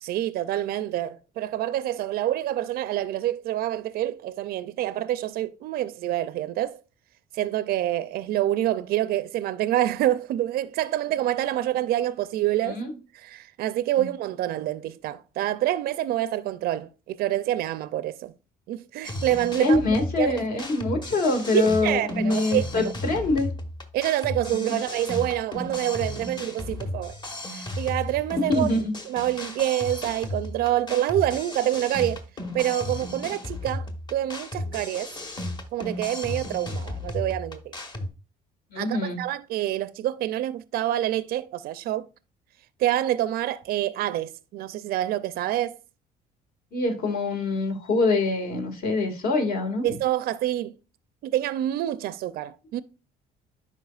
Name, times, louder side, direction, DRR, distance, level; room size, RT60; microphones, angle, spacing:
voice 1, 0.0-6.8 7.3-12.8 13.1-18.3 18.7-19.8 20.2-20.4 21.5-22.7 23.1-23.2 23.9-27.2 27.5-28.7 29.1-32.2 32.5-35.1 35.7-37.8 38.8-42.1 42.8-45.8 49.8-50.7 51.2-52.8, right 13 dB, 65° right, 0.4 m, -27 dB
sound 1, 19.0-38.1, left 1 dB, 25° left, 1.2 m, -35 dB
voice 2, 19.6-23.5 24.5-24.8 28.5-28.9 38.7-39.2 46.7-49.9, left 2 dB, 60° left, 1.9 m, -24 dB
10.5 x 4.6 x 2.4 m
cardioid pair, 110°, 17 cm